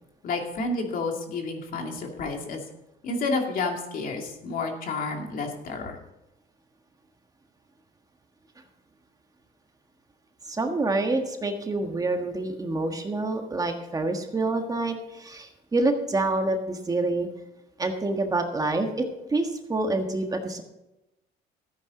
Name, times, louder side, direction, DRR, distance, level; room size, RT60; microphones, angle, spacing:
voice 1, 0.2-2.6 3.0-5.9, left 3 dB, 55° left, 2 dB, 2.5 m, -30 dB
voice 2, 10.5-17.3 17.8-20.6, right 2 dB, 20° right, 4 dB, 1.5 m, -27 dB
14.0 x 9.5 x 3.9 m, 0.94 s
cardioid pair, 110°, 17 cm